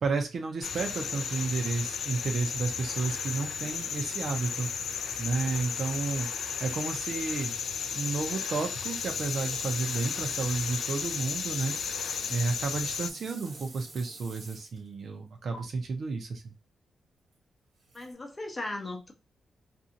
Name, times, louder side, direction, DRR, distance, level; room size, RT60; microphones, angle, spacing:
voice 1, 0.0-4.7 5.2-6.3 6.6-7.5 7.9-11.8 12.3-16.5, right 4 dB, 60° right, 0.6 m, -32 dB
sound 1, 0.6-13.1, left 6 dB, 80° left, 0.3 m, -34 dB
sound 2, 3.1-14.9 15.5-15.6 17.9-18.1, right 2 dB, 85° right, 1.1 m, -49 dB
voice 2, 17.9-19.1, left 2 dB, 25° left, 0.7 m, -37 dB
2.6 x 2.4 x 2.7 m
wide cardioid pair, 120°, 0 cm